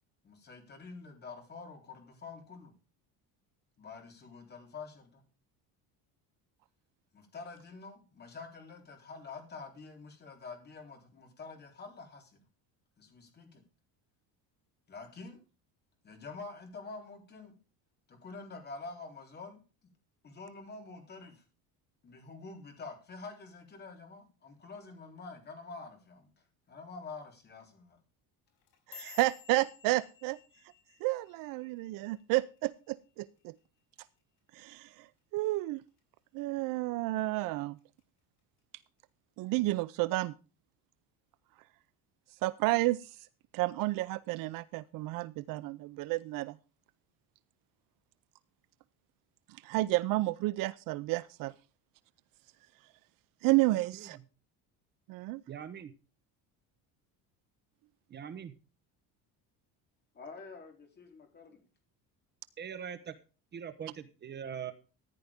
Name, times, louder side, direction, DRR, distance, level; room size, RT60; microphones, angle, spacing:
voice 1, 0.2-2.7 3.8-5.2 7.1-12.3 13.0-13.6 14.9-15.4 16.0-17.6 18.1-19.6 20.2-21.3 22.0-26.3 26.7-28.0 60.1-61.6, left 4 dB, 25° left, 4 dB, 3.7 m, -47 dB
sound 1, 28.5-32.9 33.2-33.6 34.0-34.4 34.8-35.0 35.6-36.0 36.4-37.2 37.6-38.0 38.8-38.9, left 8 dB, 65° left, 5.5 m, -55 dB
voice 2, 28.9-30.4 31.0-33.5 34.5-35.8 36.3-37.8 39.4-40.3 42.4-43.2 43.5-46.6 49.5-51.5 53.4-54.2 55.1-55.4, right 19 dB, 60° right, 16 dB, 0.6 m, -31 dB
voice 3, 55.5-55.9 58.1-58.5 62.6-63.1 63.5-64.7, right 8 dB, 25° right, 9 dB, 1.0 m, -42 dB
14.5 x 10.5 x 3.6 m, 0.34 s
cardioid pair, 170°, 39 cm